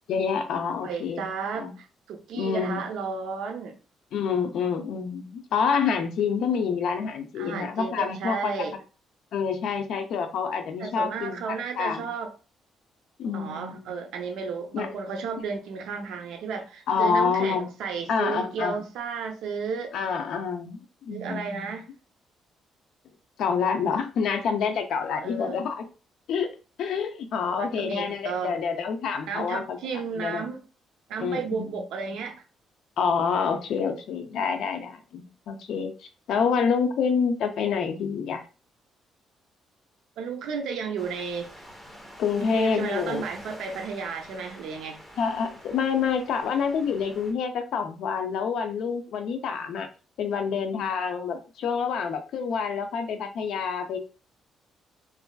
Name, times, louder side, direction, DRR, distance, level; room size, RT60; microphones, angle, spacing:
voice 1, 0.1-1.2 1.5-1.7 2.3-2.8 4.1-8.5 9.3-12.1 13.2-13.9 14.7-14.9 16.9-17.7 18.1-18.8 19.9-21.8 23.4-25.8 26.3-26.5 26.8-29.8 30.1-30.4 31.2-31.8 33.0-35.9 36.3-38.4 42.2-43.2 45.2-49.9 50.2-54.0, left 6 dB, 75° left, 0.5 m, -27 dB
voice 2, 0.8-3.8 7.4-8.8 10.8-12.3 13.3-19.9 21.1-21.9 25.2-25.6 27.4-28.6 29.3-30.6 31.1-32.4 40.2-41.5 42.3-45.0, right 5 dB, 85° right, 0.5 m, -33 dB
sound 1, 41.0-47.3, equal, ahead, 0.9 m, -47 dB
3.1 x 2.5 x 2.3 m
cardioid pair, 115°, 0 cm